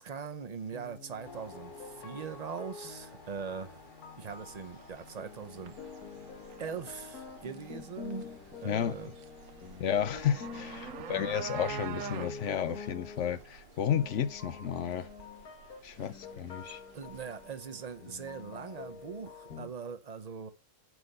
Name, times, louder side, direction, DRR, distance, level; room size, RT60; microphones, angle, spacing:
voice 1, 0.0-3.9 4.2-5.8 6.6-9.1 16.9-20.5, right 6 dB, 35° right, 0.7 m, -41 dB
sound 1, 0.7-19.7, left 5 dB, 75° left, 2.0 m, -47 dB
sound 2, 1.2-19.6, left 2 dB, 30° left, 2.2 m, -57 dB
sound 3, 4.3-17.5, right 10 dB, 65° right, 1.0 m, -47 dB
voice 2, 9.8-15.1 15.8-16.8, left 9 dB, 60° left, 1.0 m, -32 dB
8.0 x 7.7 x 5.5 m
omnidirectional pair, 1.6 m